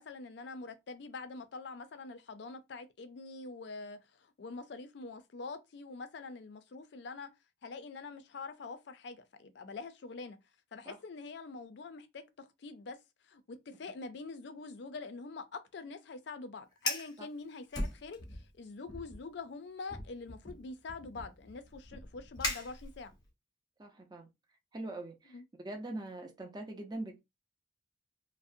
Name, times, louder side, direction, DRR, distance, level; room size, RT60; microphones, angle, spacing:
voice 1, 0.0-7.3 7.6-10.4 10.7-13.0 13.2-23.1 25.3-25.4, left 4 dB, 60° left, 0.4 m, -45 dB
Fire, 16.7-17.2 17.7-18.5 18.9-19.2 19.9-23.3, left 2 dB, 20° left, 0.6 m, -39 dB
voice 2, 23.8-24.3 24.7-25.4 25.6-27.2, right 2 dB, 20° right, 0.4 m, -42 dB
2.6 x 2.0 x 2.5 m
head